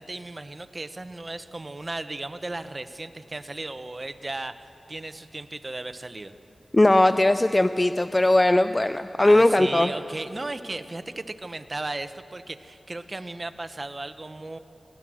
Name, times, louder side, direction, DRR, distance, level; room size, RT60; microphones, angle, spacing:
voice 1, 0.0-6.3 9.2-14.6, right 2 dB, 40° right, 11 dB, 0.9 m, -36 dB
voice 2, 6.7-9.9, left 1 dB, 25° left, 11 dB, 0.5 m, -19 dB
24.5 x 18.0 x 6.3 m, 2.9 s
cardioid pair, 50°, 0 cm